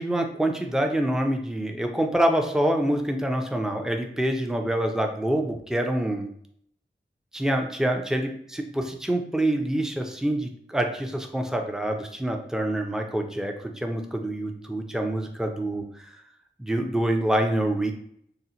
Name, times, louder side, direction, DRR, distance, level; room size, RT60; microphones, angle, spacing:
voice 1, 0.0-6.3 7.3-16.1 16.6-17.9, right 1 dB, 5° right, 4 dB, 0.4 m, -26 dB
2.8 x 2.0 x 3.8 m, 0.67 s
wide cardioid pair, 55°, 20 cm